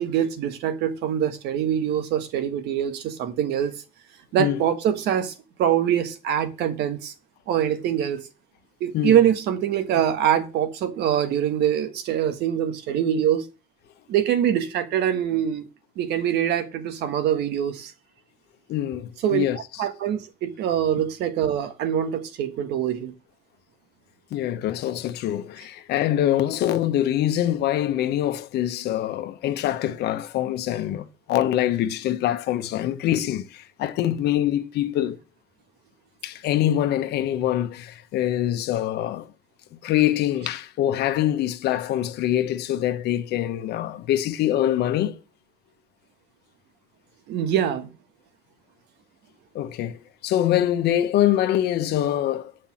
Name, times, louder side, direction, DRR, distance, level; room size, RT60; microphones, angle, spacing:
voice 1, 0.0-3.7 4.3-5.3 5.6-7.1 7.5-8.2 8.8-13.4 14.1-15.7 16.0-17.9 19.2-19.4 19.8-23.1 47.3-47.9, right 10 dB, 80° right, 1.5 m, -24 dB
voice 2, 18.7-19.8 24.3-35.2 36.2-39.3 39.8-45.2 49.5-50.0 50.2-52.5, left 12 dB, 75° left, 1.0 m, -24 dB
7.5 x 5.4 x 7.3 m
cardioid pair, 110°, 17 cm